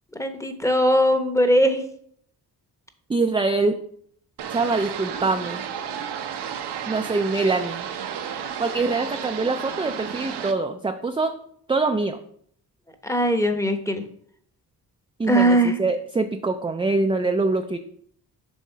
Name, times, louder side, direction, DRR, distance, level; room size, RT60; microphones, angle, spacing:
voice 1, 0.1-1.8 13.0-14.0 15.3-15.7, equal, 5° left, 7 dB, 0.9 m, -20 dB
voice 2, 3.1-3.7 4.5-5.6 6.9-7.9 8.6-11.3 11.7-12.2 15.2-17.8, right 3 dB, 15° right, 5 dB, 0.4 m, -24 dB
sound 1, 4.4-10.5, right 8 dB, 80° right, 0.8 m, -32 dB
7.2 x 3.7 x 5.6 m, 0.64 s
cardioid pair, 90°, 40 cm